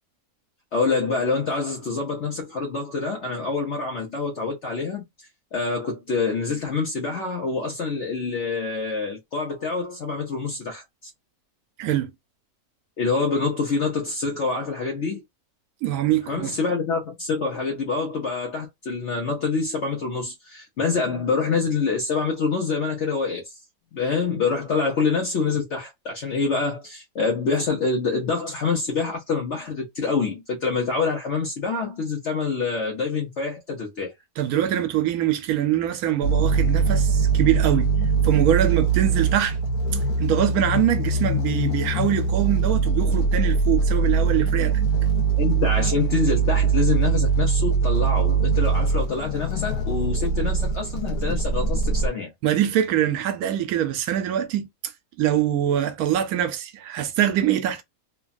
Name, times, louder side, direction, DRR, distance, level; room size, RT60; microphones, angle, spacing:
voice 1, 0.7-5.1 5.5-10.8 13.0-15.2 16.3-23.6 23.9-34.1 45.4-52.3, left 4 dB, 60° left, 1.0 m, -26 dB
voice 2, 11.8-12.1 15.8-16.5 34.4-37.9 38.2-39.6 39.8-44.8 52.4-54.7 55.2-57.8, right 11 dB, 85° right, 1.1 m, -23 dB
sound 1, 36.2-52.1, right 4 dB, 90° left, 1.4 m, -22 dB
3.2 x 2.2 x 2.4 m
omnidirectional pair, 1.5 m